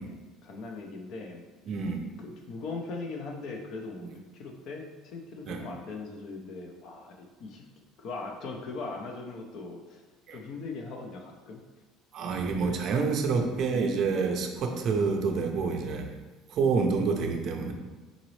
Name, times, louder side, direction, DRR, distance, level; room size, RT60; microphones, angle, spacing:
voice 1, 0.0-1.4 2.2-7.7 8.0-10.0 10.3-11.6 12.5-12.9 13.4-13.9, left 3 dB, 45° left, 2 dB, 0.6 m, -40 dB
voice 2, 1.7-2.1 5.5-5.6 10.3-10.4 12.1-16.1 16.5-17.7, right 4 dB, 40° right, 3 dB, 0.5 m, -28 dB
3.9 x 3.9 x 3.1 m, 1.2 s
cardioid pair, 165°, 0 cm